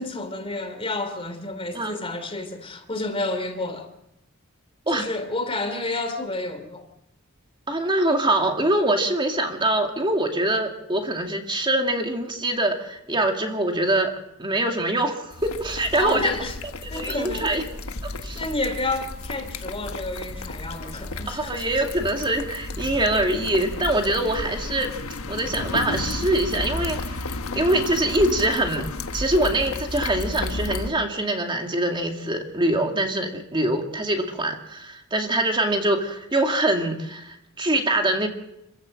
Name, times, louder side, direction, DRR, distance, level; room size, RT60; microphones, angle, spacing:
voice 1, 0.0-3.9 4.9-6.9 15.9-16.6 16.9-17.5 18.1-21.7, left 2 dB, 25° left, 2.9 m, -30 dB
voice 2, 7.7-14.1 14.4-16.3 16.8-17.6 18.2-18.4 21.3-24.9 25.3-27.2 27.5-28.9 29.1-38.3, right 1 dB, 25° right, 2.3 m, -24 dB
sound 1, 15.3-30.9, left 2 dB, 85° left, 1.4 m, -33 dB
27.5 x 15.0 x 7.8 m
head